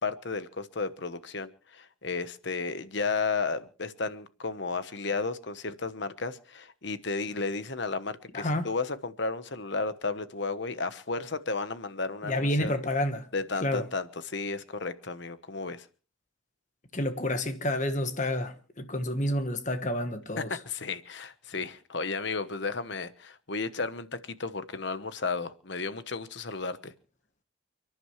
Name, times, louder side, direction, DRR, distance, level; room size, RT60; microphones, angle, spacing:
voice 1, 0.0-12.7 13.3-15.9 20.4-26.9, left 4 dB, 55° left, 1.2 m, -33 dB
voice 2, 8.3-8.7 12.2-13.3 13.6-13.8 16.9-20.6, left 1 dB, 35° left, 1.3 m, -29 dB
30.0 x 11.0 x 3.2 m
head